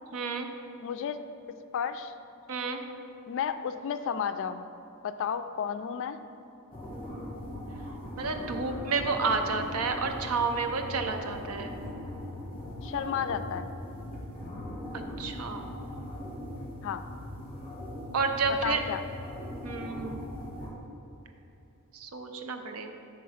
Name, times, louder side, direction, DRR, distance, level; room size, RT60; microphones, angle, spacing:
voice 1, 0.1-0.5 2.5-2.8 8.2-11.7 14.9-15.7 18.1-18.8 19.6-20.2 21.9-22.9, right 4 dB, 70° right, 5 dB, 0.6 m, -30 dB
voice 2, 0.8-1.2 1.7-2.1 3.3-4.6 5.0-6.2 12.8-13.7 16.8-17.0 18.6-19.0, left 7 dB, 60° left, 10 dB, 0.3 m, -32 dB
sound 1, 6.7-20.7, left 1 dB, 25° left, 1.7 m, -40 dB
7.5 x 3.8 x 5.6 m, 2.8 s
head